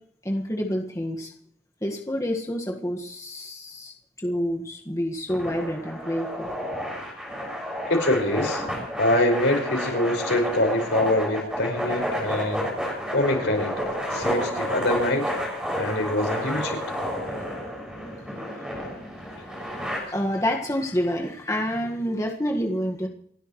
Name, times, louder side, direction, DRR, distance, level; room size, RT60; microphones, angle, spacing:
voice 1, 0.2-1.3 1.8-6.8 18.3-18.7 19.4-23.1, equal, 20° left, 1 dB, 1.7 m, -28 dB
sound 1, 5.3-20.0, equal, 5° right, 6.6 m, -30 dB
voice 2, 7.9-8.6 9.0-12.7 13.1-13.7 14.1-15.3 15.8-16.8 19.3-19.4, left 1 dB, 90° left, 2 dB, 5.4 m, -24 dB
29.0 x 12.0 x 3.2 m, 0.65 s
head